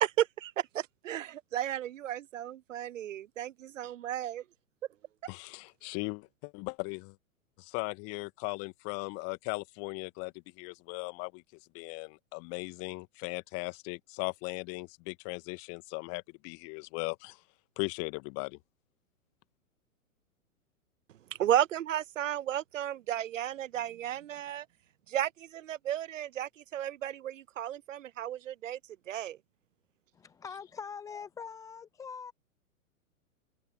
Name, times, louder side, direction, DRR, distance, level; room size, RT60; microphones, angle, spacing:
voice 1, 0.0-4.4 21.4-24.6 25.1-28.8 29.1-29.4, right 11 dB, 65° right, 0.7 m, -33 dB
voice 2, 5.3-7.2 7.6-11.4 11.7-17.4 17.8-18.6, left 32 dB, 35° left, 1.7 m, -38 dB
voice 3, 30.1-32.3, left 6 dB, 10° left, 0.5 m, -43 dB
open air
figure-of-eight pair, 105°, 42 cm